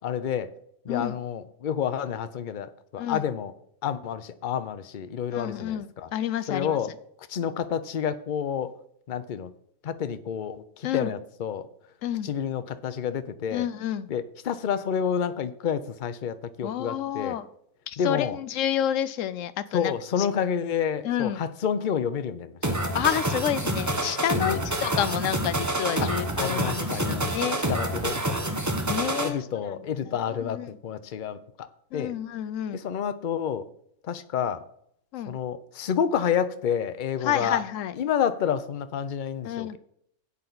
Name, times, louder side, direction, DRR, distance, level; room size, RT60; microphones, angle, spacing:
voice 1, 0.0-0.5 0.8-3.5 3.8-6.1 6.5-6.9 7.3-8.7 9.1-9.5 9.8-11.7 12.2-13.7 14.1-17.4 18.0-18.4 19.7-22.6 24.4-24.7 26.0-28.5 28.8-31.7 31.9-32.1 32.7-33.6 34.0-34.7 35.3-37.6 37.9-39.8, left 8 dB, 50° left, 11 dB, 0.6 m, -29 dB
voice 2, 5.3-6.8 10.8-11.1 12.0-12.3 13.5-14.1 16.6-17.5 17.9-19.9 21.0-21.4 22.9-27.6 28.9-29.4 29.6-29.8 30.3-30.7 31.9-32.8 35.1-35.4 37.2-37.9 39.4-39.8, left 10 dB, 65° left, 14 dB, 0.9 m, -29 dB
sound 1, 22.6-29.3, right 1 dB, 15° right, 0.8 m, -28 dB
11.0 x 8.5 x 4.0 m, 0.70 s
omnidirectional pair, 1.5 m